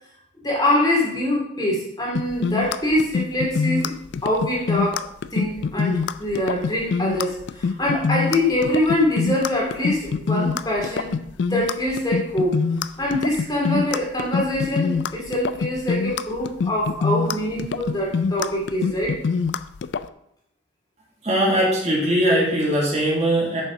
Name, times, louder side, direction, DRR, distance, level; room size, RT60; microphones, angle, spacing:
voice 1, 0.4-3.9 4.2-11.1 11.5-12.6 13.0-19.2, left 1 dB, 20° left, -3 dB, 2.4 m, -24 dB
sound 1, 2.1-20.0, left 5 dB, 65° left, 0.4 m, -24 dB
voice 2, 21.2-23.6, right 1 dB, 35° right, -3 dB, 2.0 m, -20 dB
9.1 x 7.1 x 3.7 m, 0.75 s
head